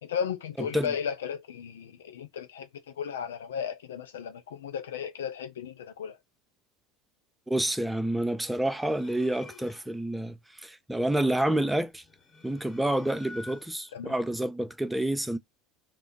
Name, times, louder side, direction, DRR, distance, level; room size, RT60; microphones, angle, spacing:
voice 1, 0.0-6.2 13.9-14.2, left 7 dB, 85° left, 0.4 m, -35 dB
voice 2, 7.5-12.0 12.4-15.4, right 1 dB, 5° right, 0.4 m, -28 dB
sound 1, 8.4-10.0 11.9-14.0, left 2 dB, 30° left, 1.1 m, -50 dB
2.2 x 2.0 x 3.7 m
hypercardioid pair, 80°, 0 cm